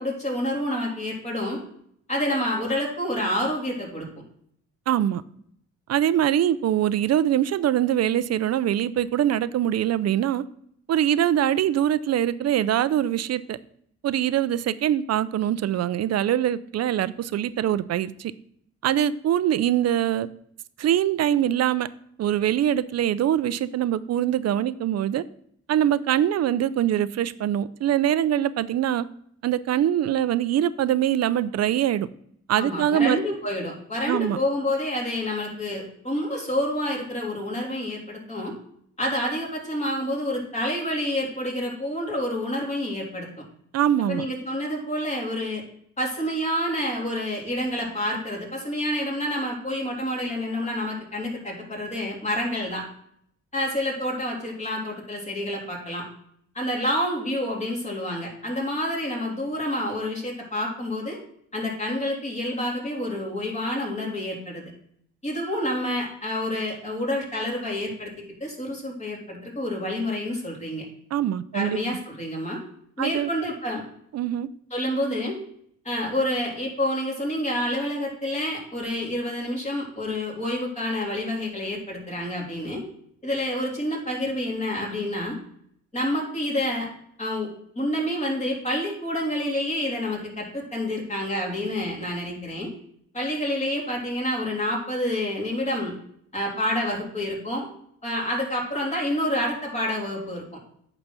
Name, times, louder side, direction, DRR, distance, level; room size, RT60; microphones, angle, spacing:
voice 1, 0.0-1.6 2.1-4.1 32.6-38.6 39.0-43.3 44.1-45.6 46.0-52.8 53.5-56.0 56.5-61.2 61.5-64.6 65.2-70.8 71.5-72.6 73.0-73.8 74.7-75.4 75.8-82.8 83.2-85.4 85.9-86.9 87.2-87.5 87.7-92.7 93.1-95.9 96.3-97.7 98.0-100.4, left 1 dB, 25° left, 3.1 m, -28 dB
voice 2, 4.9-5.2 5.9-10.4 10.9-13.6 14.0-18.3 18.8-20.3 20.8-21.9 22.2-25.2 25.7-29.1 29.4-32.1 32.5-33.2 34.1-34.4 43.7-44.3 71.1-72.0 73.0-73.3 74.1-74.5, right 11 dB, 60° right, 0.5 m, -23 dB
8.8 x 4.0 x 6.0 m
cardioid pair, 90°, 30 cm